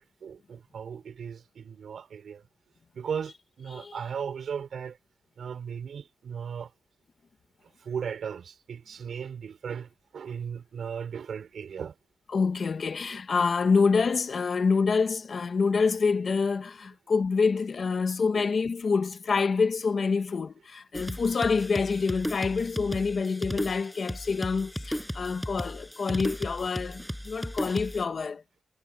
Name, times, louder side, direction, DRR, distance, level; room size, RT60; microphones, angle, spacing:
voice 1, 0.0-2.4 2.9-5.0 5.4-6.7 7.8-12.0 13.1-13.2 17.4-17.5 18.3-18.5, right 7 dB, 90° right, 6.1 m, -37 dB
voice 2, 12.3-28.4, left 5 dB, 55° left, 1.8 m, -26 dB
sound 1, 20.9-28.0, equal, ahead, 7.8 m, -36 dB
wide cardioid pair, 120°, 0 cm